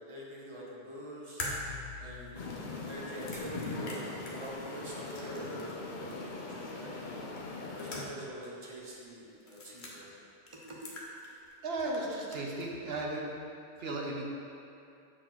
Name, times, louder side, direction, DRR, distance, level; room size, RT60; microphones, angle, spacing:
voice 1, 0.0-1.5 2.0-7.2 7.8-10.1 10.5-10.8, right 1 dB, 30° right, -4 dB, 1.0 m, -45 dB
sound 1, 1.4-5.8 6.1-6.2 7.4-8.4 8.6-8.7 9.4-9.9 10.5-11.5 11.8-12.7, left 2 dB, 75° left, 1.2 m, -43 dB
sound 2, 2.3-8.0, left 3 dB, 50° left, 0.7 m, -41 dB
voice 2, 11.6-13.3 13.8-14.2, right 2 dB, 65° right, -1 dB, 1.0 m, -35 dB
6.1 x 4.6 x 4.0 m, 2.6 s
omnidirectional pair, 1.1 m